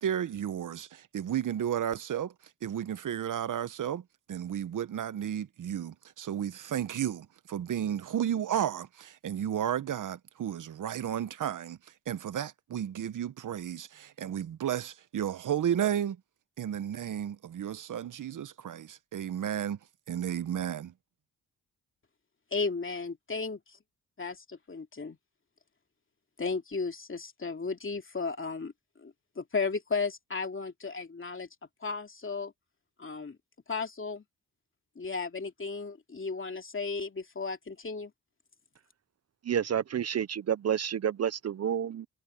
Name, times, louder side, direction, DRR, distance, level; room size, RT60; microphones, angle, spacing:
voice 1, 0.0-2.3 2.6-4.0 4.3-11.8 12.1-16.2 16.6-19.8 20.1-20.9, right 10 dB, 65° right, 1.0 m, -33 dB
voice 2, 22.5-23.8 24.2-25.2 26.4-28.7 29.0-31.5 31.8-32.5 33.0-33.4 33.7-34.2 35.0-38.1, left 4 dB, 40° left, 2.7 m, -34 dB
voice 3, 39.4-42.1, right 9 dB, 50° right, 0.6 m, -29 dB
supercardioid pair, 50°, 33 cm